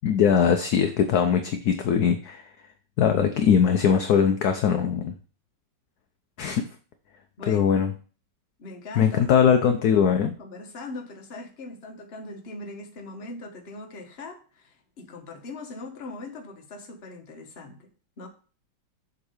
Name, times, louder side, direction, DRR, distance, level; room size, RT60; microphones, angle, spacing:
voice 1, 0.0-2.5 3.0-5.1 6.4-6.6 7.5-7.9 9.0-10.3, left 7 dB, 70° left, 6 dB, 0.9 m, -21 dB
voice 2, 7.4-7.8 8.6-9.2 9.6-9.8 10.1-17.9 18.2-18.3, left 2 dB, 40° left, 3 dB, 1.1 m, -40 dB
7.4 x 3.7 x 4.8 m, 0.39 s
omnidirectional pair, 2.1 m